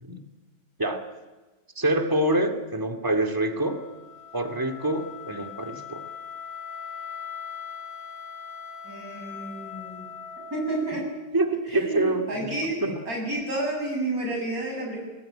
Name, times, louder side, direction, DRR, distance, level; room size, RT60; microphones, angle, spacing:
voice 1, 1.8-3.8 4.3-6.1 11.3-13.0, right 1 dB, 10° right, 6 dB, 2.2 m, -26 dB
Wind instrument woodwind instrument, 3.3-11.3, left 7 dB, 70° left, 4.1 m, -41 dB
voice 2, 8.8-10.1 10.5-11.1 11.7-15.0, right 2 dB, 40° right, 0 dB, 8.2 m, -30 dB
26.5 x 19.0 x 9.1 m, 1.2 s
omnidirectional pair, 2.2 m